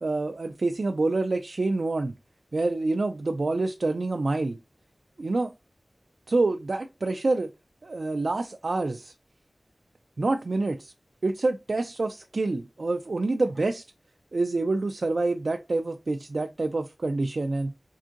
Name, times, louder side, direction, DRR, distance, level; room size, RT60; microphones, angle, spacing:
voice 1, 0.0-2.1 2.5-4.6 5.2-5.5 6.3-7.5 7.8-9.1 10.2-10.9 11.2-13.8 14.3-17.7, right 2 dB, 75° right, 0.3 m, -27 dB
4.7 x 2.6 x 2.4 m
wide cardioid pair, 45°, 0 cm